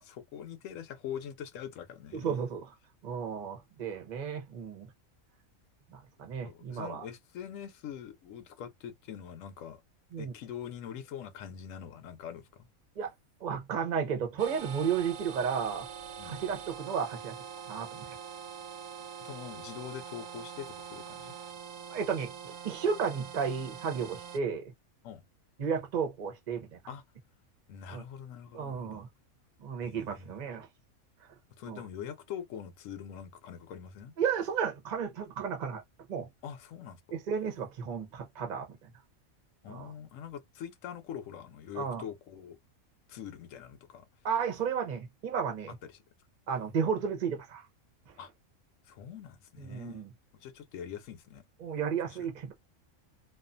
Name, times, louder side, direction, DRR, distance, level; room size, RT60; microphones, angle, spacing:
voice 1, 0.0-2.5 6.4-9.8 10.2-12.7 16.2-16.4 19.2-21.3 25.0-25.2 26.9-27.0 27.7-29.0 29.8-30.4 31.6-34.1 36.4-37.0 39.6-42.6 43.1-44.1 45.8-46.0 48.2-48.3 48.9-50.0 50.4-51.4 52.1-52.3, left 9 dB, 70° left, 0.9 m, -43 dB
voice 2, 2.1-2.7 3.0-4.9 5.9-7.0 10.1-10.3 13.0-13.1 13.4-15.9 16.2-17.4 17.7-18.0 21.9-24.7 25.6-26.8 27.9-28.0 28.5-29.1 29.6-30.7 31.7-31.8 34.2-35.8 36.1-36.3 37.1-38.9 39.7-39.9 41.7-42.0 44.2-45.7 46.5-47.7 49.6-50.1 51.6-52.5, right 6 dB, 45° right, 0.7 m, -33 dB
sound 1, 14.4-24.4, right 7 dB, 70° right, 0.9 m, -44 dB
2.4 x 2.4 x 2.5 m
omnidirectional pair, 1.5 m